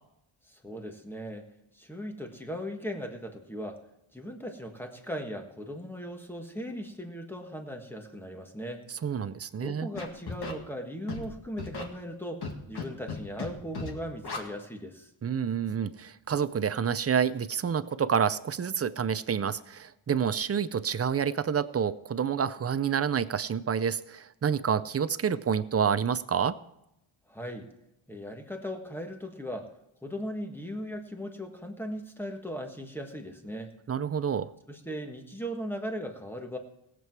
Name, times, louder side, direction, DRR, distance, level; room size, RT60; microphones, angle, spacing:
voice 1, 0.5-1.5 1.7-3.8 4.1-8.8 9.6-15.1 27.3-27.7 28.1-29.7 30.0-33.7 34.7-36.6, equal, 5° left, 3 dB, 1.4 m, -38 dB
voice 2, 9.0-9.9 15.2-26.6 33.9-34.5, right 7 dB, 30° right, 14 dB, 0.5 m, -28 dB
Scratching (performance technique), 10.0-10.5 11.1-11.3 11.6-11.8 12.4-12.8 13.1-13.5 13.7-13.9 14.2-14.4, left 4 dB, 50° left, 1.9 m, -35 dB
19.5 x 7.7 x 4.6 m, 0.84 s
wide cardioid pair, 155°, 49 cm